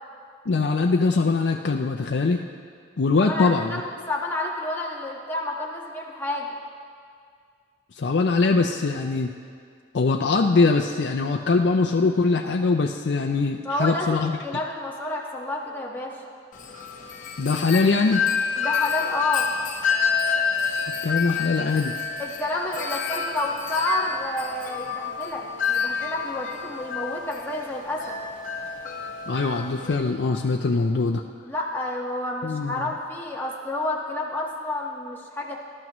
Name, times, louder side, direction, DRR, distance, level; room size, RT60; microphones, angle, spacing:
voice 1, 0.5-2.4 3.0-3.8 7.9-9.3 9.9-14.3 17.4-18.2 21.0-21.9 29.3-31.2 32.4-32.9, left 3 dB, 70° left, 2 dB, 0.5 m, -22 dB
voice 2, 3.2-6.5 13.6-16.2 18.6-19.5 22.2-28.2 31.4-35.6, left 2 dB, 10° left, -3 dB, 1.5 m, -29 dB
Wind chime, 16.5-29.9, left 6 dB, 45° left, 1.2 m, -29 dB
20.0 x 12.0 x 3.1 m, 2.2 s
head